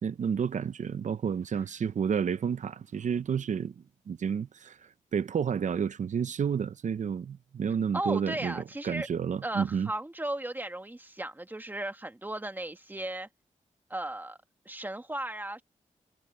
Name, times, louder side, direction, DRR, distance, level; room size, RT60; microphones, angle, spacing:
voice 1, 0.0-3.7 4.1-9.9, right 7 dB, 65° right, 0.6 m, -30 dB
voice 2, 7.9-9.1 9.4-13.3 13.9-14.4 14.7-15.6, right 1 dB, 15° right, 1.9 m, -35 dB
wide cardioid pair, 100°, 14 cm